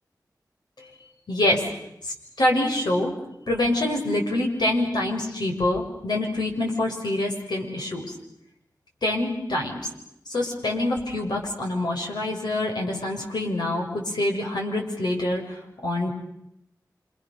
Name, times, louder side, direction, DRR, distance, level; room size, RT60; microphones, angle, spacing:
voice 1, 1.3-1.6 2.0-3.1 3.5-8.0 9.0-9.8 10.3-16.1, left 1 dB, 90° left, 1 dB, 6.8 m, -26 dB
28.5 x 28.0 x 6.9 m, 0.81 s
wide cardioid pair, 65°, 7 cm